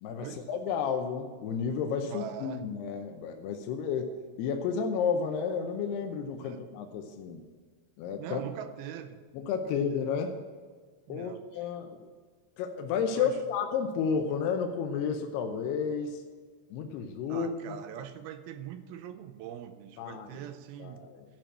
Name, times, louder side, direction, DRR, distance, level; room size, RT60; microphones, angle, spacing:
voice 1, 0.0-7.4 8.0-8.4 9.3-10.4 11.1-12.1 12.6-16.2 16.7-17.8 20.0-20.3 20.8-21.2, left 6 dB, 80° left, 4 dB, 2.7 m, -32 dB
voice 2, 2.0-2.7 6.4-6.6 8.2-9.2 9.7-10.1 11.1-11.7 13.2-13.4 17.3-21.1, right 9 dB, 80° right, 9 dB, 2.3 m, -42 dB
15.0 x 5.0 x 7.4 m, 1.5 s
omnidirectional pair, 4.8 m